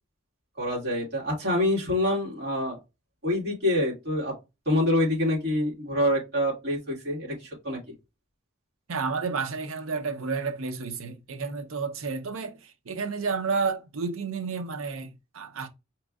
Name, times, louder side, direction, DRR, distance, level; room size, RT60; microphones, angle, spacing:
voice 1, 0.6-2.8 3.2-4.3 4.7-7.8, left 1 dB, 55° right, 2.0 m, -26 dB
voice 2, 8.9-15.7, right 4 dB, 90° right, 0.7 m, -31 dB
5.2 x 3.0 x 2.4 m
head